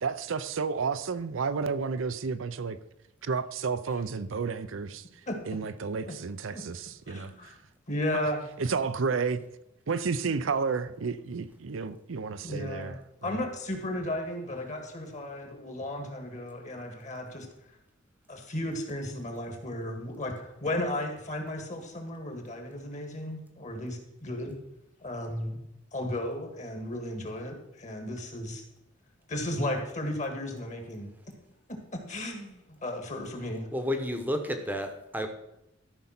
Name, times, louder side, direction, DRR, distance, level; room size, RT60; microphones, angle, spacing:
voice 1, 0.0-2.8 3.3-5.0 5.5-6.8 7.1-7.3 8.7-9.4 9.9-12.9, right 5 dB, 70° right, 0.6 m, -31 dB
voice 2, 5.3-5.6 6.1-6.2 6.5-6.6 7.1-7.6 7.9-8.4 12.4-17.5 18.3-24.5 25.0-25.6 25.9-28.6 29.3-31.1 32.1-33.7, left 1 dB, 40° left, 2.0 m, -34 dB
voice 3, 33.7-35.3, equal, 10° right, 1.0 m, -31 dB
13.0 x 5.4 x 5.9 m
head